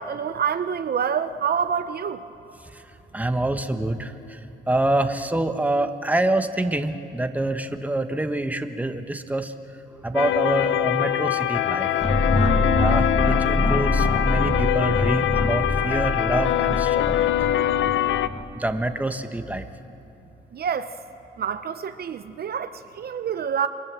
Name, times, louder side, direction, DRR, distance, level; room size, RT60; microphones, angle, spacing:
voice 1, 0.0-2.2 20.5-21.0 21.4-23.7, right 7 dB, 50° right, 10 dB, 0.8 m, -27 dB
voice 2, 3.1-4.4 4.7-9.5 10.0-11.9 12.8-17.2 18.5-19.7, right 1 dB, 5° right, 8 dB, 1.3 m, -26 dB
sound 1, 10.1-18.3, left 12 dB, 75° left, 0.8 m, -23 dB
sound 2, 12.0-18.4, left 1 dB, 30° left, 4.5 m, -25 dB
28.0 x 22.5 x 7.6 m, 2.8 s
cardioid pair, 90°, 20 cm